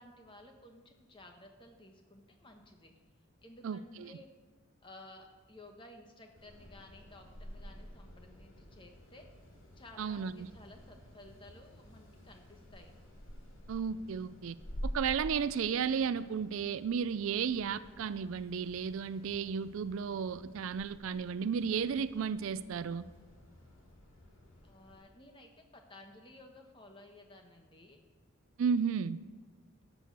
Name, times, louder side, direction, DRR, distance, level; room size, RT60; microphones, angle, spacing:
voice 1, 0.0-2.9 3.4-4.3 4.8-9.3 9.8-12.9 24.6-28.0, left 1 dB, 20° left, 3 dB, 1.1 m, -55 dB
voice 2, 3.6-4.1 10.0-10.5 13.7-14.6 14.8-23.1 28.6-29.2, right 6 dB, 70° right, 15 dB, 0.4 m, -33 dB
sound 1, 6.3-25.0, equal, 65° left, 2.6 m, -50 dB
11.5 x 6.2 x 6.7 m, 1.4 s
head